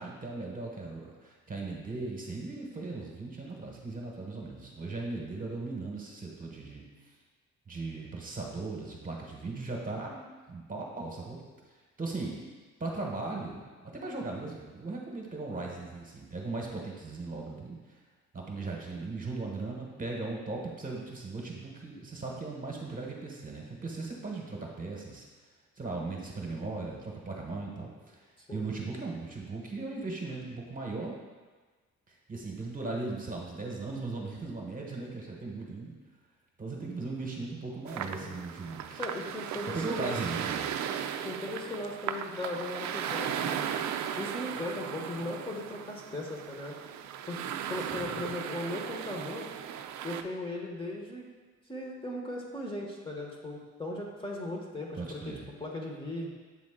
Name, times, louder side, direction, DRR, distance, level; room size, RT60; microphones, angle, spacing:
voice 1, 0.0-6.8 7.7-10.2 10.5-11.4 12.0-12.4 12.8-17.8 18.3-25.2 25.8-28.2 28.5-31.1 32.1-35.9 36.6-39.0 39.7-40.7 47.9-48.2 55.0-55.5, right 3 dB, 25° right, -1 dB, 1.2 m, -38 dB
sound 1, 37.9-50.2, right 9 dB, 70° right, 0.4 m, -36 dB
voice 2, 38.0-38.3 38.9-40.5 41.2-43.6 44.2-46.8 47.3-49.5 50.0-51.2 51.7-56.3, left 1 dB, 15° left, -2 dB, 1.1 m, -38 dB
7.3 x 3.6 x 3.7 m, 1.4 s
cardioid pair, 90°, 30 cm